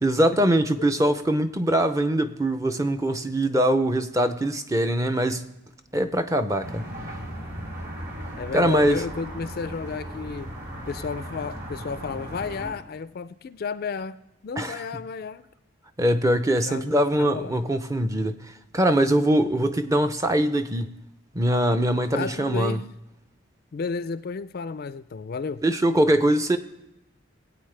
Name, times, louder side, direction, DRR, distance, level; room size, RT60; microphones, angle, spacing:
voice 1, 0.0-5.5 5.9-6.8 8.5-9.0 14.6-14.8 16.0-18.4 18.7-20.9 21.3-22.8 25.6-26.6, right 1 dB, 15° right, 0.5 m, -22 dB
sound 1, 6.6-12.7, equal, 55° right, 3.4 m, -37 dB
voice 2, 8.4-10.5 10.9-14.2 14.4-15.4 16.7-17.6 22.1-22.9 23.7-25.6, left 5 dB, 45° left, 0.3 m, -32 dB
20.0 x 8.7 x 3.3 m
head